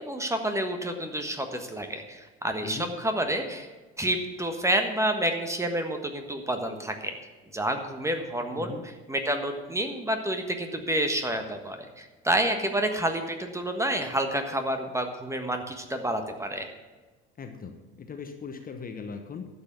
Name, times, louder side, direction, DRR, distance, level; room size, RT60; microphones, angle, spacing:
voice 1, 0.0-3.7 4.0-7.1 7.5-8.8 9.1-16.7, right 1 dB, 10° right, 5 dB, 1.4 m, -29 dB
voice 2, 2.6-2.9 8.5-8.8 17.4-19.5, left 5 dB, 30° left, 6 dB, 1.1 m, -39 dB
12.0 x 7.0 x 6.9 m, 1.3 s
figure-of-eight pair, 65°, 31 cm